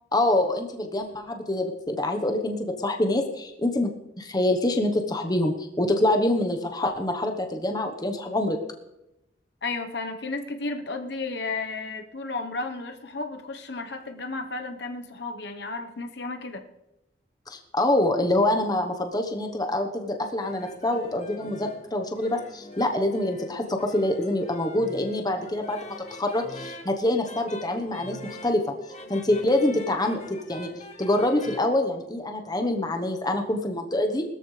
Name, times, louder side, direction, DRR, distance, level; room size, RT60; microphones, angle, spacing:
voice 1, 0.1-3.9 4.2-8.6 17.5-28.7 29.1-30.7 31.0-34.2, left 1 dB, 20° left, 4 dB, 1.1 m, -25 dB
voice 2, 9.6-16.6, left 3 dB, 60° left, 5 dB, 1.0 m, -33 dB
sound 1, 20.2-31.6, left 2 dB, 35° left, 1.5 m, -44 dB
20.0 x 13.5 x 3.3 m, 0.91 s
head